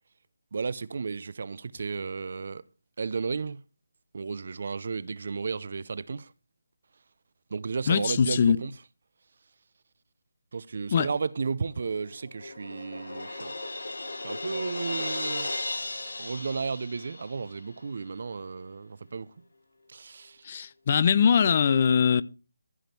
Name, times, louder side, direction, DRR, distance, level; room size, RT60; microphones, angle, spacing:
voice 1, 0.5-2.6 3.0-3.6 4.1-6.3 7.5-8.7 10.5-13.5 14.2-15.5 16.2-19.3 19.9-20.4, right 5 dB, 55° right, 0.8 m, -33 dB
voice 2, 7.9-8.6 10.9-11.1 20.4-22.2, left 7 dB, 35° left, 0.6 m, -22 dB
Crash cymbal, 11.8-17.6, left 2 dB, 80° left, 3.6 m, -36 dB
15.0 x 5.2 x 6.0 m
figure-of-eight pair, 165°, 0 cm